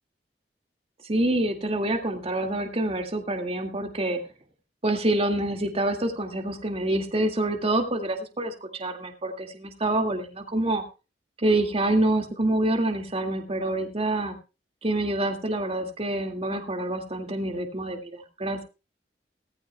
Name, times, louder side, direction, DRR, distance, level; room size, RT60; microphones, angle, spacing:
voice 1, 1.0-4.2 4.8-10.8 11.4-14.4 14.8-18.6, right 1 dB, 35° right, 3 dB, 2.0 m, -26 dB
18.0 x 15.0 x 2.3 m, 0.30 s
head